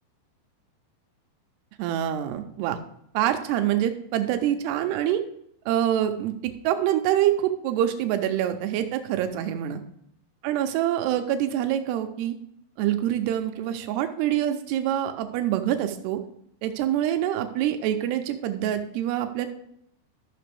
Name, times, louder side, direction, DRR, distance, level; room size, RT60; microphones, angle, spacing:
voice 1, 1.8-2.8 3.1-5.2 5.7-9.8 10.4-12.4 12.8-16.2 16.6-19.5, right 11 dB, 80° right, 7 dB, 2.6 m, -25 dB
13.5 x 5.9 x 3.4 m, 0.72 s
omnidirectional pair, 5.0 m